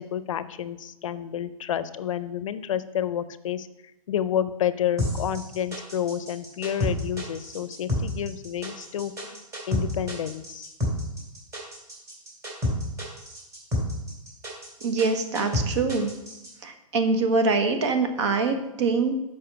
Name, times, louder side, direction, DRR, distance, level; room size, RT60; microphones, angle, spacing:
voice 1, 0.0-3.7 4.1-10.7, left 10 dB, 60° left, 14 dB, 0.6 m, -30 dB
sound 1, 5.0-16.5, left 2 dB, 15° right, 2.2 m, -29 dB
voice 2, 14.8-16.1 16.6-19.1, right 4 dB, 50° right, 8 dB, 1.3 m, -24 dB
6.9 x 5.4 x 6.7 m, 0.92 s
hypercardioid pair, 165°, 18 cm